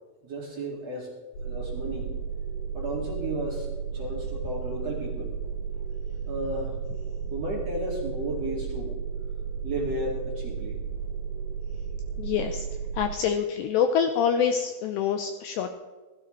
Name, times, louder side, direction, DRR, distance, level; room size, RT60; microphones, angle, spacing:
voice 1, 0.2-1.1 1.4-2.2 2.7-3.7 3.9-5.3 6.3-6.8 7.3-9.0 9.6-10.8, right 1 dB, 45° right, -3 dB, 2.5 m, -33 dB
sound 1, 1.3-13.1, right 6 dB, 60° left, 7.3 m, -33 dB
voice 2, 12.2-12.7 12.9-15.7, left 7 dB, 85° left, 6 dB, 2.5 m, -26 dB
16.5 x 15.5 x 3.2 m, 1.2 s
omnidirectional pair, 5.7 m